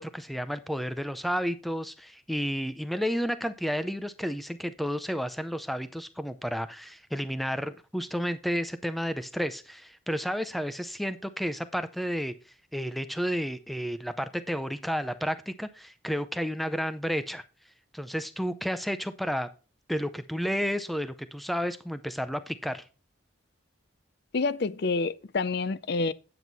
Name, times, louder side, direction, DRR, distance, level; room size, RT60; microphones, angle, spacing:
voice 1, 0.0-17.4 17.9-19.5 19.9-22.8, equal, ahead, 0.5 m, -31 dB
voice 2, 24.3-26.1, left 3 dB, 55° left, 0.5 m, -28 dB
9.2 x 7.8 x 4.0 m
head